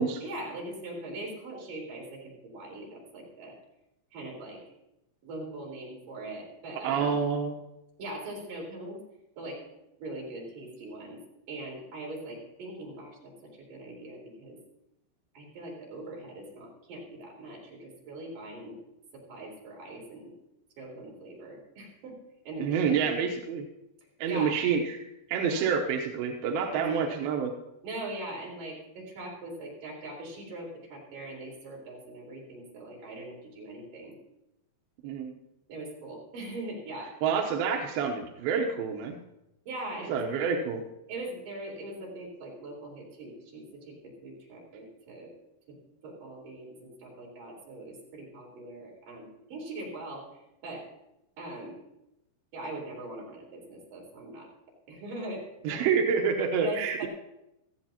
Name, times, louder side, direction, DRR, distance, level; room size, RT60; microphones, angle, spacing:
voice 1, 0.2-3.6 4.1-4.6 5.2-7.2 8.0-9.0 9.4-9.6 10.0-11.2 11.5-14.6 15.3-18.8 19.1-20.3 20.8-22.2 22.4-23.1 24.3-24.6 25.5-25.7 26.7-27.0 27.8-34.2 35.7-37.1 39.6-40.2 41.1-45.3 45.7-45.8 46.0-50.9 51.4-51.8 52.5-54.5 54.9-56.0 56.6-57.1, right 2 dB, 50° right, -3 dB, 5.1 m, -41 dB
voice 2, 6.8-7.7 22.6-23.7 24.2-27.5 35.0-35.3 37.2-39.2 40.1-40.8 55.6-57.1, right 6 dB, 75° right, 3 dB, 2.3 m, -28 dB
18.5 x 14.0 x 2.9 m, 0.88 s
omnidirectional pair, 5.3 m